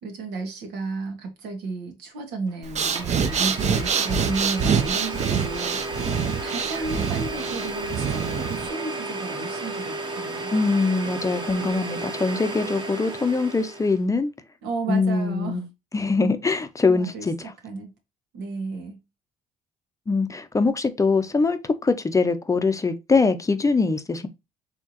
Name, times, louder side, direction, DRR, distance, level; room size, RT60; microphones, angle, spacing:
voice 1, 0.0-10.5 14.6-15.6 16.8-17.9 18.3-19.0, right 4 dB, 85° right, 1.7 m, -33 dB
Domestic sounds home sounds, 2.5-2.6 2.9-14.0, right 2 dB, 25° right, 1.1 m, -33 dB
Breathing, 2.6-8.7, right 6 dB, 40° right, 0.6 m, -26 dB
voice 2, 10.5-14.3 14.9-15.6 15.9-17.3 20.1-24.3, left 4 dB, 20° left, 0.6 m, -23 dB
4.6 x 3.6 x 2.8 m
cardioid pair, 110°, 17 cm